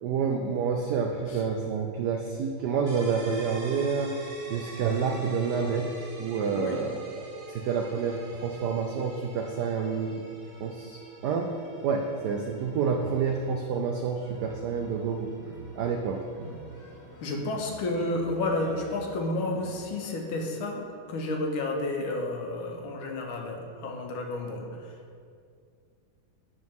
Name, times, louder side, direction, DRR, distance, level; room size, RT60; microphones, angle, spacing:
voice 1, 0.0-4.1 4.5-5.9 6.2-7.0 7.5-10.2 10.6-11.5 11.8-15.3 15.8-16.2, right 6 dB, 80° right, 2 dB, 0.9 m, -28 dB
sound 1, 2.9-18.4, right 1 dB, 45° right, 1.4 m, -47 dB
sound 2, 14.2-19.8, right 1 dB, 35° left, 1.0 m, -47 dB
voice 2, 17.2-24.7, left 2 dB, 75° left, 2 dB, 1.7 m, -31 dB
8.6 x 6.2 x 3.6 m, 2.3 s
omnidirectional pair, 2.4 m